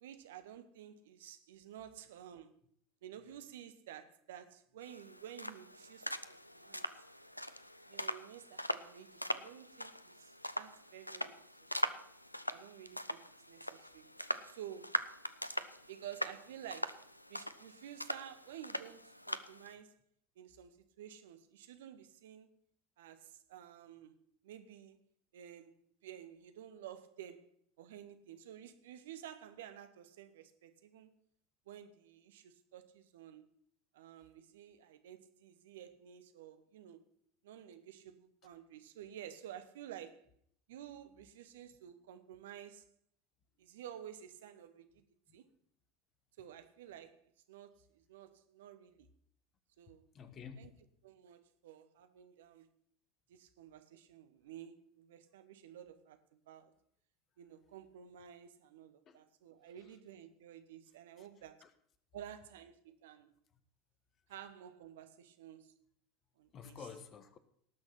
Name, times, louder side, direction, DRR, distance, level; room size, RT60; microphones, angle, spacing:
voice 1, 0.0-2.6 3.0-6.9 7.9-11.4 12.5-14.1 14.5-15.0 15.9-17.0 17.3-20.0 20.4-22.5 23.0-24.2 24.4-25.0 25.3-25.7 26.0-27.4 27.8-31.1 31.7-33.5 33.9-37.0 37.4-40.3 40.7-42.8 43.6-45.0 45.3-45.5 46.4-47.2 47.5-49.1 49.8-50.1 50.6-50.7 51.0-52.7 53.3-56.2 56.5-56.7 57.4-61.6 62.1-63.3 64.3-65.7 66.4-66.9, right 10 dB, 65° right, 1.0 m, -52 dB
sound 1, 4.8-19.7, left 1 dB, 90° left, 0.5 m, -42 dB
voice 2, 50.1-50.7 59.1-59.2 61.2-61.3 61.6-61.7 66.5-67.4, left 6 dB, 35° left, 1.3 m, -50 dB
18.5 x 6.2 x 5.9 m
figure-of-eight pair, 75°, 0 cm